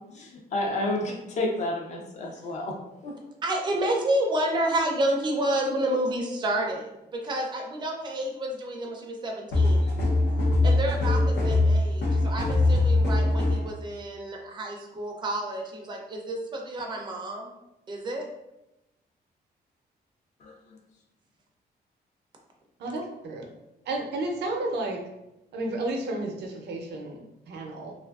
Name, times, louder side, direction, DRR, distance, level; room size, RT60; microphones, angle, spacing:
voice 1, 0.1-2.8 3.0-3.1 20.4-20.8, left 1 dB, 45° left, 1 dB, 0.5 m, -31 dB
voice 2, 3.4-10.0 10.6-17.5 17.9-18.3, right 1 dB, 25° right, 1 dB, 0.4 m, -29 dB
sound 1, 9.5-13.7, left 2 dB, 85° left, 0.6 m, -22 dB
voice 3, 22.8-23.4 23.9-25.0 25.5-27.9, right 2 dB, 85° right, 2 dB, 0.5 m, -32 dB
2.6 x 2.4 x 2.3 m, 0.92 s
wide cardioid pair, 180°, 17 cm